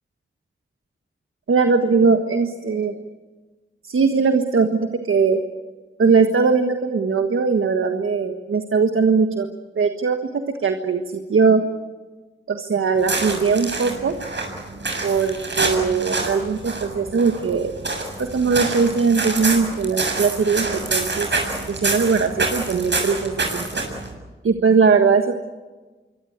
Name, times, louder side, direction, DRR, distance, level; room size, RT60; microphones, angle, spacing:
voice 1, 1.5-2.9 3.8-5.4 6.0-9.5 9.7-10.2 10.5-11.6 12.5-14.2 15.0-17.7 18.2-21.3 21.7-23.8 24.4-25.4, right 5 dB, 80° right, 6 dB, 1.6 m, -20 dB
Footsteps on stones & pebbles, 13.0-24.1, right 3 dB, 60° right, 7.1 m, -27 dB
26.5 x 24.0 x 8.2 m, 1.3 s
cardioid pair, 45°, 21 cm